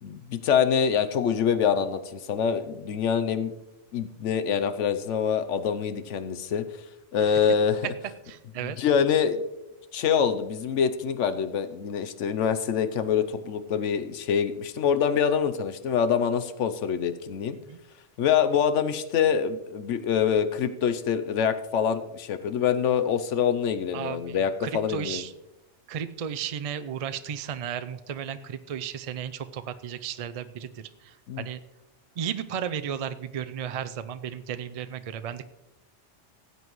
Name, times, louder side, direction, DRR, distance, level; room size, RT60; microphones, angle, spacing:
voice 1, 0.0-3.5 3.9-6.6 7.1-7.9 8.8-9.4 9.9-17.6 18.2-25.2 31.3-31.5, left 7 dB, 85° left, 10 dB, 1.0 m, -25 dB
voice 2, 8.3-8.8 17.7-17.8 23.9-25.3 25.9-30.7 31.0-31.6 32.2-35.4, right 8 dB, 65° right, 10 dB, 0.3 m, -34 dB
17.5 x 7.9 x 3.1 m, 0.96 s
omnidirectional pair, 1.2 m